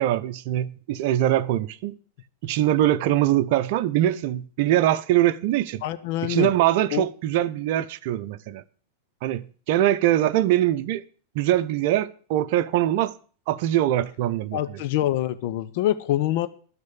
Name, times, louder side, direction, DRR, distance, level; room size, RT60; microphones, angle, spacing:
voice 1, 0.0-2.0 2.4-5.8 6.2-8.6 9.2-11.0 11.3-13.1 13.5-14.6, right 13 dB, 50° right, 0.7 m, -22 dB
voice 2, 5.8-6.5 6.9-7.1 14.5-16.5, left 13 dB, 50° left, 0.8 m, -25 dB
12.5 x 6.4 x 8.5 m
figure-of-eight pair, 90°, 0 cm